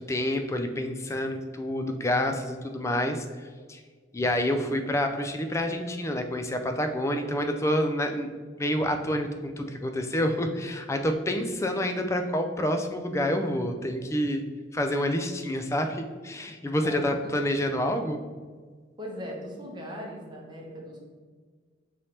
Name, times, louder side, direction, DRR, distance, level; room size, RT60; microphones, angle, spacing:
voice 1, 0.0-3.2 3.7-3.8 4.1-8.3 8.6-14.4 14.7-18.2, left 1 dB, 15° left, 6 dB, 0.3 m, -28 dB
voice 2, 16.8-17.3 19.0-21.0, equal, 25° right, -2 dB, 0.8 m, -39 dB
5.4 x 3.2 x 2.9 m, 1.5 s
head